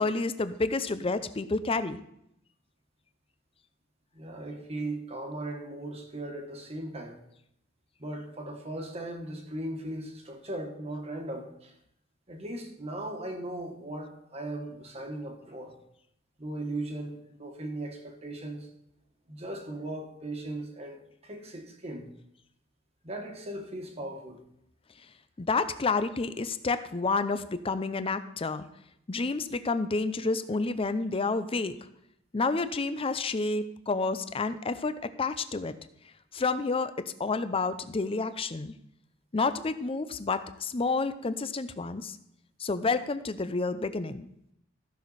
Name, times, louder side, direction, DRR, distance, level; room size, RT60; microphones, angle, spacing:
voice 1, 0.0-2.0 25.4-28.7 29.1-31.8 32.3-35.7 36.3-38.7 39.3-42.2 42.6-44.3, left 3 dB, 30° left, 12 dB, 0.5 m, -29 dB
voice 2, 4.1-7.2 8.0-11.7 12.3-15.7 16.4-18.7 19.3-22.1 23.0-24.4, right 1 dB, 30° right, 3 dB, 1.4 m, -38 dB
14.5 x 6.3 x 4.1 m, 0.77 s
head